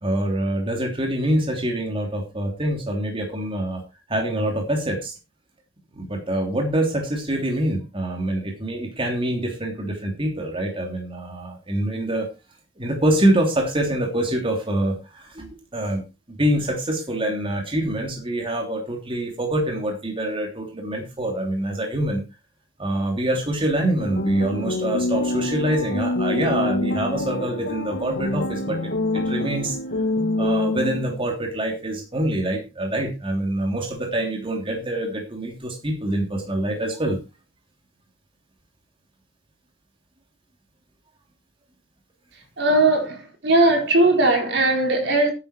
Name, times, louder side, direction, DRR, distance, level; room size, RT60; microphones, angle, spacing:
voice 1, 0.0-3.8 4.1-5.1 5.9-12.3 12.8-22.2 22.8-29.8 30.4-37.2, right 1 dB, 30° right, 3.2 m, -25 dB
sound 1, 24.0-31.3, left 2 dB, 65° left, 1.7 m, -26 dB
voice 2, 42.6-45.3, right 2 dB, 65° right, 4.8 m, -19 dB
12.0 x 9.8 x 4.5 m
head